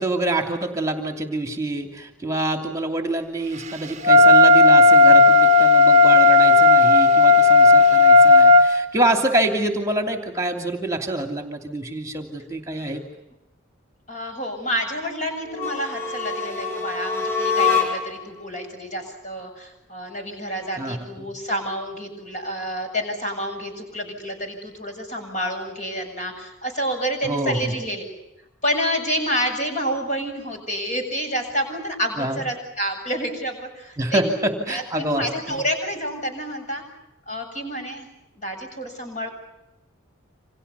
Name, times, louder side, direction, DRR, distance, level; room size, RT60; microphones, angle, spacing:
voice 1, 0.0-13.0 20.8-21.3 27.2-27.8 32.2-32.4 34.0-35.6, right 1 dB, 15° right, 4 dB, 2.7 m, -26 dB
Wind instrument woodwind instrument, 4.0-8.7, left 3 dB, 35° right, 1.0 m, -12 dB
voice 2, 14.1-28.0 28.6-34.4 34.7-36.8 37.3-38.1 38.3-39.3, equal, 35° left, 4 dB, 7.6 m, -29 dB
sound 1, 15.5-18.3, left 5 dB, 10° left, 7.1 m, -24 dB
29.5 x 26.5 x 6.9 m, 0.87 s
head